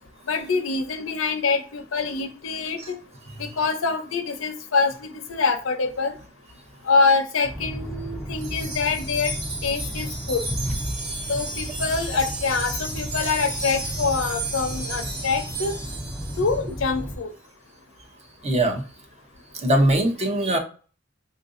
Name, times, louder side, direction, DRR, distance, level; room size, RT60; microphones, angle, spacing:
voice 1, 0.3-2.8 3.4-6.1 6.8-9.3 9.6-10.4 11.3-15.7 16.4-17.3, left 4 dB, 75° left, 7 dB, 0.6 m, -25 dB
sound 1, 7.4-17.2, equal, 5° left, 0.4 m, -33 dB
Wind chime, 8.4-16.6, right 2 dB, 50° right, 1.0 m, -34 dB
voice 2, 18.4-18.8 19.6-20.6, right 1 dB, 35° right, 3 dB, 0.7 m, -20 dB
3.7 x 2.6 x 2.5 m, 0.38 s
head